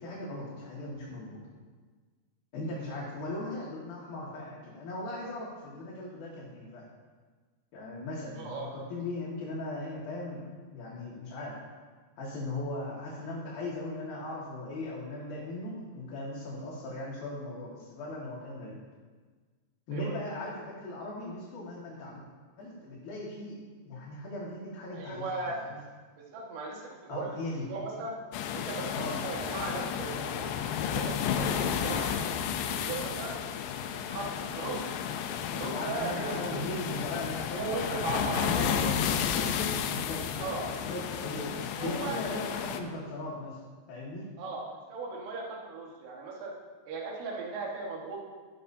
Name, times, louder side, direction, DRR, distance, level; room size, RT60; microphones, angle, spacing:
voice 1, 0.0-1.4 2.5-6.9 7.7-10.4 10.7-11.6 12.2-18.8 19.9-22.2 22.6-23.6 23.9-25.2 25.6-25.7 27.1-27.7 28.9-29.2 35.7-41.5 41.8-43.6 43.9-44.3, left 2 dB, 65° left, -5 dB, 3.5 m, -38 dB
voice 2, 8.3-8.7 19.9-20.3 24.9-25.6 26.2-28.2 28.5-30.5 30.9-32.2 32.7-33.4 33.9-34.3 34.6-34.9 35.5-36.6 37.5-38.8 40.4-40.7 41.4-41.5 41.8-42.2 44.4-46.5 46.9-48.2, right 4 dB, 75° right, -2 dB, 3.7 m, -37 dB
sound 1, 28.3-42.8, left 8 dB, 80° left, 2.8 m, -32 dB
13.5 x 12.5 x 2.8 m, 1.5 s
omnidirectional pair, 5.0 m